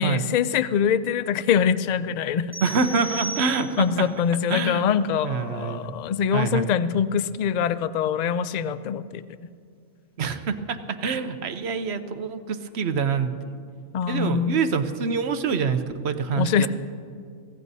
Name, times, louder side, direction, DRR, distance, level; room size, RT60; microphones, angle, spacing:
voice 1, 0.0-2.5 3.8-9.4 13.9-14.6 16.4-16.7, left 8 dB, 65° left, 14 dB, 0.4 m, -24 dB
sound 1, 2.5-4.0, right 2 dB, 15° right, 1.9 m, -35 dB
voice 2, 2.6-4.1 4.5-4.8 5.2-5.9 6.3-6.7 10.2-13.3 14.1-16.7, right 5 dB, 65° right, 10 dB, 1.0 m, -26 dB
24.0 x 16.5 x 2.7 m, 2.2 s
omnidirectional pair, 1.2 m